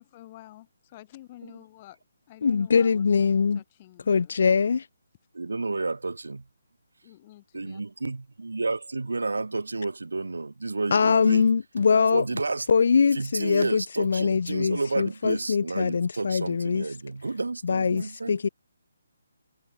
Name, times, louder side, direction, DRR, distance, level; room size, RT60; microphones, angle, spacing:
voice 1, 0.0-2.0 2.3-3.1 3.5-4.3 7.0-7.8, left 15 dB, 30° left, 2.8 m, -49 dB
voice 2, 2.4-3.6 4.1-4.9 10.9-12.2 12.7-16.8 17.6-18.5, left 5 dB, 60° left, 0.4 m, -22 dB
voice 3, 5.3-6.4 7.5-11.5 12.1-12.7 13.1-18.4, right 3 dB, 85° right, 0.7 m, -31 dB
hypercardioid pair, 155°, 0 cm